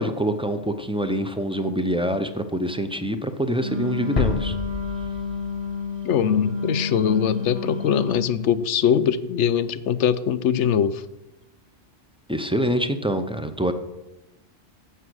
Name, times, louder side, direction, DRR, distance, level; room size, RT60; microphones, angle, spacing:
voice 1, 0.0-4.5 12.3-13.7, equal, 5° right, 8 dB, 0.5 m, -25 dB
Wind instrument woodwind instrument, 3.6-8.3, left 4 dB, 40° right, 2.4 m, -30 dB
sound 1, 4.2-6.6, left 5 dB, 35° left, 0.7 m, -29 dB
voice 2, 6.0-11.0, left 8 dB, 75° left, 15 dB, 0.9 m, -22 dB
11.5 x 8.2 x 6.3 m, 0.98 s
omnidirectional pair, 1.3 m